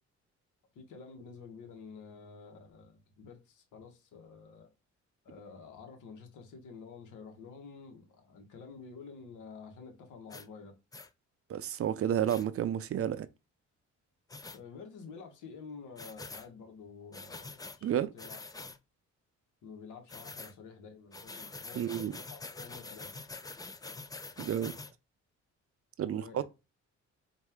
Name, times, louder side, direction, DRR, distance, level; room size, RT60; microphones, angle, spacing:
voice 1, 0.7-4.7 5.2-10.7 14.5-18.7 19.6-23.1 26.0-26.4, left 5 dB, 80° left, 1.4 m, -50 dB
sound 1, 10.3-10.5 10.9-11.1 12.3-12.4 14.3-14.6 16.0-16.5 17.1-17.8 18.2-18.8 20.1-20.5 21.1-24.9, left 3 dB, 15° left, 0.4 m, -45 dB
voice 2, 11.5-13.3 17.8-18.1 21.8-22.1 24.4-24.8 26.0-26.4, right 10 dB, 50° right, 0.5 m, -31 dB
4.2 x 2.7 x 3.6 m
cardioid pair, 90°, 30 cm